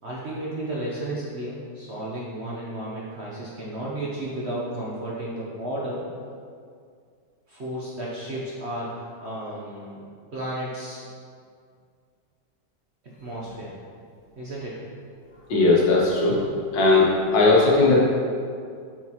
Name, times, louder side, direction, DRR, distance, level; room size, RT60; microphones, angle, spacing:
voice 1, 0.0-6.0 7.5-8.9 9.2-11.0 13.0-13.7 14.4-14.8, right 1 dB, 50° right, -6 dB, 0.8 m, -33 dB
voice 2, 15.5-16.4 16.7-18.0, left 3 dB, 80° left, -4 dB, 1.8 m, -18 dB
7.2 x 4.8 x 2.9 m, 2.2 s
omnidirectional pair, 1.9 m